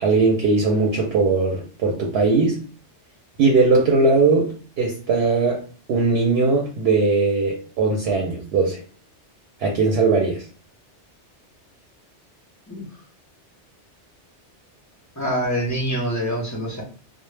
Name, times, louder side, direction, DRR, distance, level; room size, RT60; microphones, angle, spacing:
voice 1, 0.0-2.6 3.4-8.8 9.6-10.5, right 3 dB, 65° right, 0.7 m, -19 dB
voice 2, 15.2-16.8, equal, 25° left, 0.4 m, -25 dB
2.0 x 2.0 x 3.1 m
omnidirectional pair, 1.2 m